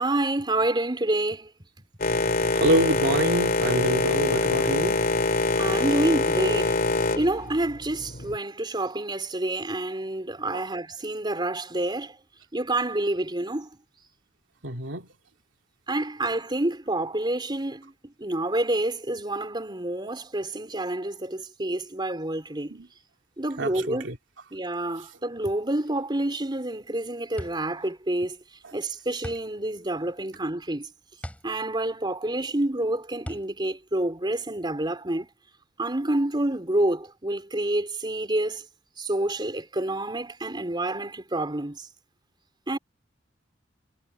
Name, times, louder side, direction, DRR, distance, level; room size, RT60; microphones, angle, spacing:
voice 1, 0.0-1.5 5.6-6.8 7.1-12.2 12.5-13.7 15.9-22.8 23.4-24.1 24.5-28.4 28.7-30.9 31.4-35.3 35.8-38.7 39.0-41.9 42.7-42.8, right 1 dB, 25° right, 3.7 m, -28 dB
Boat Water vehicle, 2.0-8.4, left 3 dB, 50° left, 2.9 m, -25 dB
voice 2, 2.5-5.0 10.5-10.6 14.6-15.1 22.8-22.9 23.6-24.2, right 1 dB, 70° right, 2.9 m, -26 dB
sound 1, 26.6-34.9, equal, 5° left, 4.3 m, -43 dB
head